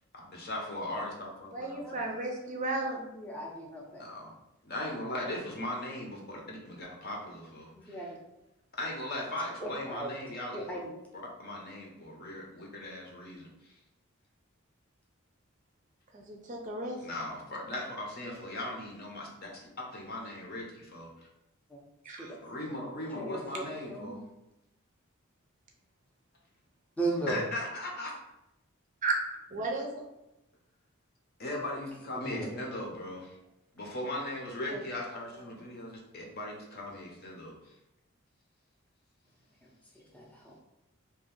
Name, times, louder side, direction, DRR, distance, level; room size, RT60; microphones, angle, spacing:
voice 1, 0.1-2.0 4.0-4.3 4.6-8.1 8.8-10.8 11.1-13.8 17.0-21.3 22.4-24.2 27.3-28.1 31.4-33.4 33.7-37.5, left 1 dB, 45° left, -1 dB, 0.8 m, -38 dB
voice 2, 1.5-3.0 16.1-17.0 22.0-22.3 29.0-29.2 29.5-30.0 34.1-34.2 34.7-34.8 35.3-35.4, right 3 dB, 35° right, 1 dB, 0.5 m, -34 dB
voice 3, 3.2-4.0 7.9-8.1 9.6-10.1 10.5-10.8 21.7-21.8 22.2-22.4 23.2-24.1 27.0-27.4 32.2-32.5 40.1-40.6, right 2 dB, 5° left, -2 dB, 0.6 m, -36 dB
2.9 x 2.6 x 3.9 m, 0.90 s
head